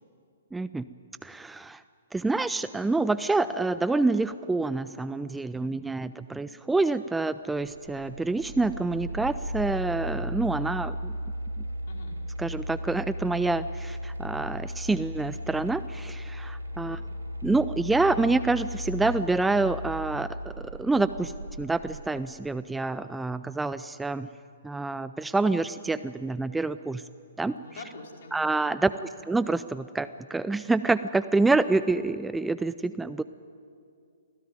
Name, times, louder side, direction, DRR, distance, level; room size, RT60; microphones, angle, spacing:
voice 1, 0.5-0.9 1.2-1.8 2.1-11.1 12.4-17.0 17.4-21.3 21.6-24.3 24.6-27.0 27.4-27.6 28.3-28.9 29.3-33.2, right 3 dB, 5° right, 14 dB, 0.5 m, -27 dB
voice 2, 5.6-6.5 11.8-12.2 16.7-17.0 27.4-28.4 28.6-29.0, left 3 dB, 60° left, 0 dB, 4.8 m, -48 dB
sound 1, 7.5-22.2, equal, 85° right, 1.9 m, -36 dB
25.5 x 17.0 x 9.4 m, 2.3 s
figure-of-eight pair, 125°, 0 cm